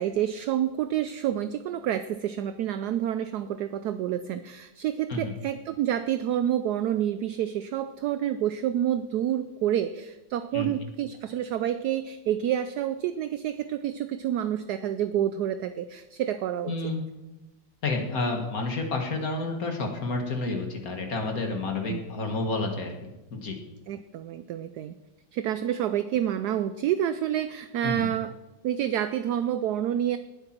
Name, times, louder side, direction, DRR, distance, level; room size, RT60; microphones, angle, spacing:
voice 1, 0.0-16.7 21.9-22.0 23.9-24.9 25.3-28.3 28.6-30.2, right 11 dB, 75° right, 11 dB, 1.0 m, -28 dB
voice 2, 16.7-17.0 17.8-23.6 27.8-28.1, left 3 dB, 50° left, 3 dB, 1.8 m, -30 dB
19.0 x 8.1 x 4.4 m, 1.0 s
omnidirectional pair, 2.0 m